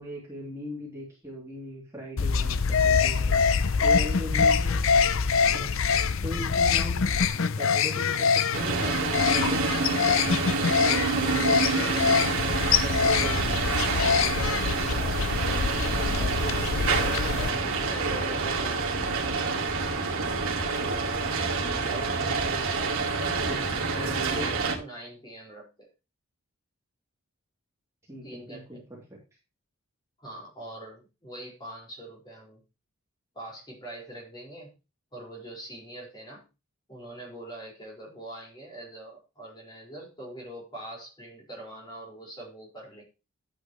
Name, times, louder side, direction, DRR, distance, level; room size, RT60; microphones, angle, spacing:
voice 1, 0.0-13.6 13.9-15.2 15.4-17.9 21.6-23.1 23.4-24.5 28.1-29.2, equal, 15° right, -5 dB, 3.0 m, -40 dB
sound 1, 2.2-17.5, left 6 dB, 65° left, 0.5 m, -25 dB
sound 2, 8.5-24.8, right 4 dB, 70° right, 2.2 m, -27 dB
voice 2, 16.4-19.6 21.9-22.2 23.3-25.9 28.2-28.9 30.2-32.6 33.3-34.7 35.1-36.5 36.9-43.0, right 1 dB, 20° left, -3 dB, 4.9 m, -43 dB
11.5 x 8.6 x 3.1 m, 0.29 s
head